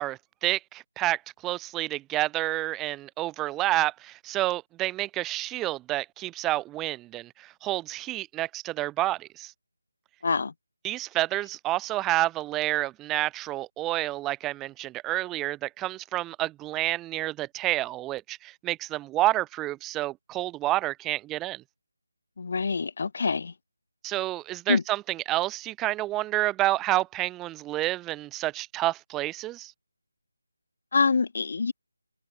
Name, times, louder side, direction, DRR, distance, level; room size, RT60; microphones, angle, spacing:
voice 1, 0.0-9.5 10.8-21.6 24.0-29.7, right 16 dB, 10° right, 0.3 m, -29 dB
voice 2, 10.2-10.5 22.4-23.5 24.7-24.8 30.9-31.7, left 4 dB, 50° left, 0.5 m, -25 dB
figure-of-eight pair, 160°, 0 cm